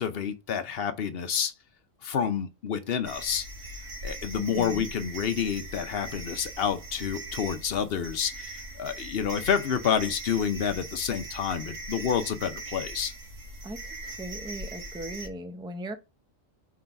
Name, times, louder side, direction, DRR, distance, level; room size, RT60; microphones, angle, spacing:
voice 1, 0.0-1.5 2.0-3.4 4.0-13.1, left 7 dB, 55° left, 0.9 m, -29 dB
sound 1, 3.0-15.3, right 1 dB, 70° right, 1.6 m, -40 dB
voice 2, 4.4-4.8 13.6-16.0, right 1 dB, 5° right, 0.5 m, -39 dB
4.7 x 3.9 x 5.7 m
omnidirectional pair, 1.4 m